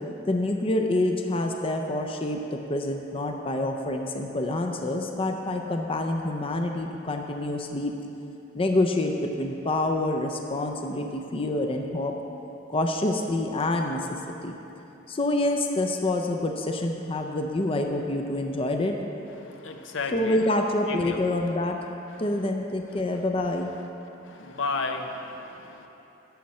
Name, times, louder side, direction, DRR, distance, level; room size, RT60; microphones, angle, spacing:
voice 1, 0.3-7.9 8.5-12.2 12.7-14.5 15.1-19.0 20.1-21.8 22.2-23.7, left 1 dB, 30° left, 3 dB, 0.5 m, -27 dB
voice 2, 19.4-20.6 20.9-21.2 24.3-25.9, left 4 dB, 80° left, 5 dB, 0.7 m, -33 dB
11.5 x 7.6 x 4.2 m, 3.0 s
head